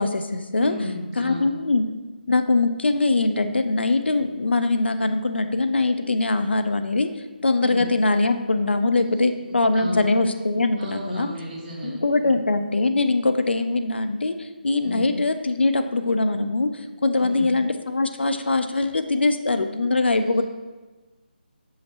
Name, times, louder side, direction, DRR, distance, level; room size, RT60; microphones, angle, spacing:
voice 1, 0.0-0.7 1.2-1.8 2.3-7.1 7.4-11.3 11.8-16.7 17.0-20.4, left 3 dB, 85° left, 9 dB, 0.5 m, -22 dB
voice 2, 0.5-1.5 7.6-7.9 9.2-9.3 9.7-10.1 10.8-12.4 14.8-15.1 17.2-17.5, left 1 dB, 35° right, -6 dB, 1.8 m, -33 dB
6.4 x 5.5 x 2.9 m, 1.2 s
figure-of-eight pair, 155°, 6 cm